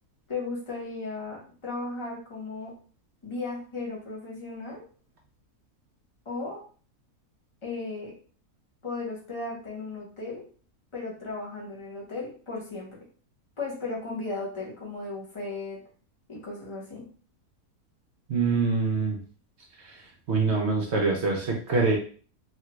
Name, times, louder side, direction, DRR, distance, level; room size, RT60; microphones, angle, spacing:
voice 1, 0.3-2.7 3.2-4.8 6.2-6.6 7.6-8.1 8.8-10.4 10.9-13.0 13.6-15.8 16.3-17.1, left 3 dB, 25° left, -4 dB, 0.8 m, -35 dB
voice 2, 18.3-19.2 20.3-22.0, right 4 dB, 60° right, 0 dB, 0.7 m, -24 dB
3.2 x 2.2 x 3.0 m, 0.41 s
omnidirectional pair, 1.6 m